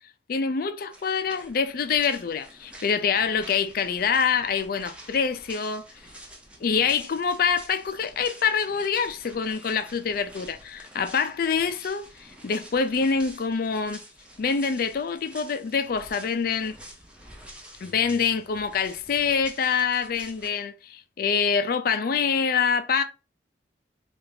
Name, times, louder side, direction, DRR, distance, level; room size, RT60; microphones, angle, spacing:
voice 1, 0.3-5.8 6.6-14.0 14.4-16.8 17.8-23.0, left 6 dB, 55° left, 0.4 m, -25 dB
sound 1, 0.9-20.5, equal, 5° right, 0.5 m, -48 dB
3.3 x 2.5 x 3.2 m
head